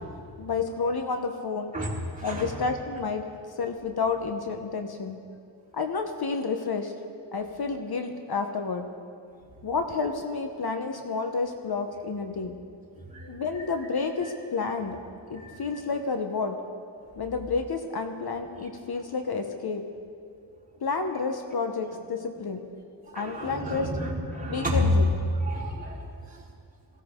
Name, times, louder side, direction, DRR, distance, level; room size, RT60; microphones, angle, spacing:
voice 1, 0.4-1.7 2.2-3.2 3.6-5.2 5.7-6.9 7.3-8.9 9.6-12.5 13.3-15.0 15.3-16.6 17.2-19.8 20.8-22.6 23.1-23.9 24.5-25.1, left 4 dB, 55° left, 5 dB, 1.2 m, -30 dB
voice 2, 2.2-2.5 9.3-9.4 13.0-13.4 15.3-15.7 18.6-18.7 23.0-24.9 25.3-26.5, left 1 dB, 15° right, -5 dB, 4.1 m, -31 dB
19.0 x 16.0 x 3.8 m, 2.4 s
cardioid pair, 65°, 46 cm